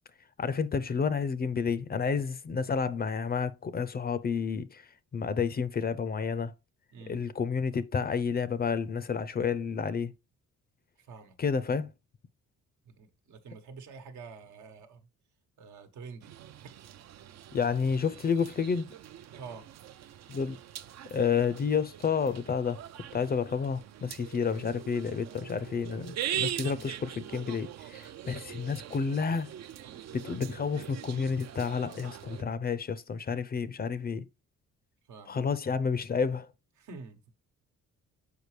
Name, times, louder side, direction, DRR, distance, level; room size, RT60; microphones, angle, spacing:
voice 1, 0.4-6.5 7.1-10.1 11.4-11.9 17.5-18.9 20.3-20.6 21.1-22.8 23.1-29.5 30.1-34.3 35.3-36.5, left 6 dB, 30° left, 0.5 m, -30 dB
voice 2, 11.0-11.4 12.8-15.0 15.6-16.3 16.6-16.7 19.3-19.6 26.7-26.9 35.1-35.4 36.8-37.2, right 5 dB, 80° right, 1.2 m, -47 dB
sound 1, 16.2-32.4, right 10 dB, 60° right, 0.5 m, -42 dB
6.7 x 4.8 x 3.2 m
cardioid pair, 90°, 30 cm